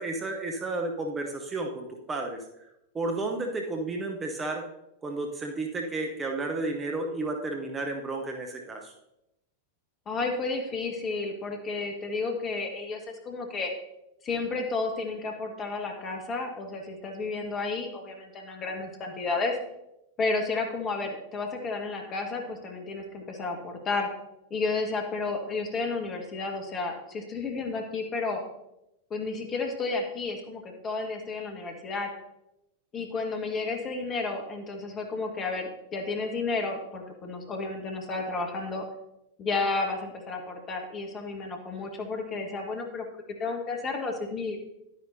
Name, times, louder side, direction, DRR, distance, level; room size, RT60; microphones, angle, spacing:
voice 1, 0.0-2.4 2.9-4.6 5.0-8.9, right 2 dB, 20° right, 2 dB, 1.0 m, -32 dB
voice 2, 10.0-13.7 14.2-19.6 20.2-24.1 24.5-28.4 29.1-32.1 32.9-38.8 39.4-43.0 43.4-44.6, left 3 dB, 25° left, 3 dB, 1.6 m, -32 dB
11.0 x 9.6 x 2.7 m, 0.86 s
figure-of-eight pair, 90°, 0 cm